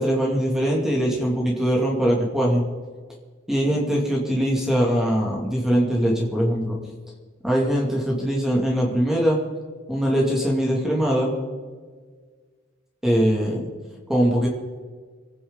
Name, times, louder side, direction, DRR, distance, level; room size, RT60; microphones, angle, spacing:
voice 1, 0.0-2.6 3.5-6.8 7.4-9.4 9.9-11.3 13.0-13.6 14.1-14.5, equal, ahead, -3 dB, 2.6 m, -21 dB
26.0 x 10.0 x 4.1 m, 1.5 s
head